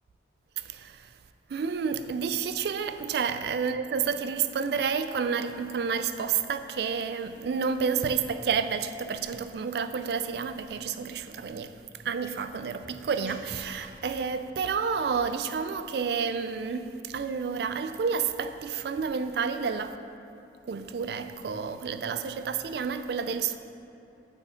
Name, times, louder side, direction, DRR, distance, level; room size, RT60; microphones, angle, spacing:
voice 1, 0.6-1.1 1.5-11.7 12.0-20.0 20.7-23.6, right 6 dB, 65° right, 10 dB, 0.3 m, -30 dB
sound 1, 12.6-16.1 17.1-17.5, equal, 5° right, 1.1 m, -52 dB
7.1 x 4.3 x 5.1 m, 2.8 s
head